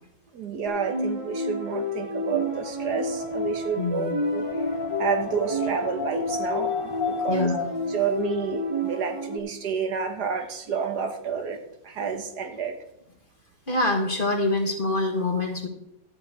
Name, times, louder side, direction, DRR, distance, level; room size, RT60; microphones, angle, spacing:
voice 1, 0.3-4.5 5.0-7.5 7.9-11.6 11.8-12.8, right 6 dB, 65° right, 6 dB, 1.6 m, -30 dB
sound 1, 0.6-9.4, equal, 20° right, 1.3 m, -30 dB
Wind, 2.6-8.6, left 7 dB, 85° left, 1.6 m, -34 dB
voice 2, 3.8-4.1 7.3-7.7 13.7-15.7, left 2 dB, 30° left, 2 dB, 1.6 m, -25 dB
12.5 x 5.2 x 8.3 m, 0.80 s
omnidirectional pair, 1.9 m